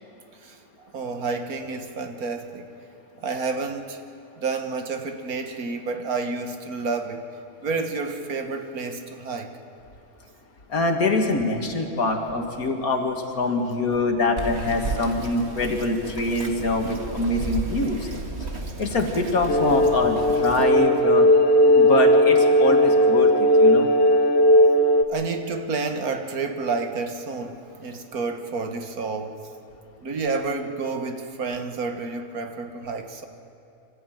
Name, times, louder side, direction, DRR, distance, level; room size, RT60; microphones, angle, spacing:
voice 1, 0.9-2.7 3.2-4.0 4.4-7.2 7.6-9.5 25.1-29.4 30.0-33.3, right 4 dB, 80° right, 6 dB, 1.9 m, -30 dB
voice 2, 10.7-18.2 18.8-21.3 21.7-23.9, left 2 dB, 75° left, 3 dB, 2.5 m, -24 dB
Bird vocalization bird call bird song, 14.4-20.6, right 3 dB, 50° right, 1.9 m, -33 dB
sound 1, 19.5-25.0, equal, 45° left, 1.1 m, -17 dB
26.0 x 14.0 x 9.2 m, 2.7 s
omnidirectional pair, 1.5 m